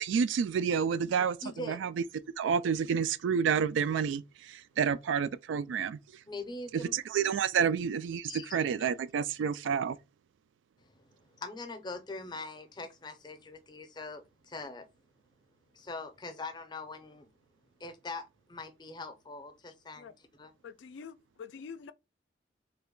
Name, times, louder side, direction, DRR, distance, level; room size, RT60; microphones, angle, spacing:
voice 1, 0.0-2.0 2.4-6.0 6.7-10.0, right 7 dB, 85° right, 0.3 m, -29 dB
voice 2, 1.4-1.8 6.3-7.0 8.3-8.5 11.4-14.9 15.7-17.3 17.8-20.1 20.4-20.5, left 3 dB, 25° left, 0.5 m, -42 dB
voice 3, 20.6-21.9, left 6 dB, 75° left, 0.3 m, -46 dB
3.3 x 2.1 x 3.7 m
head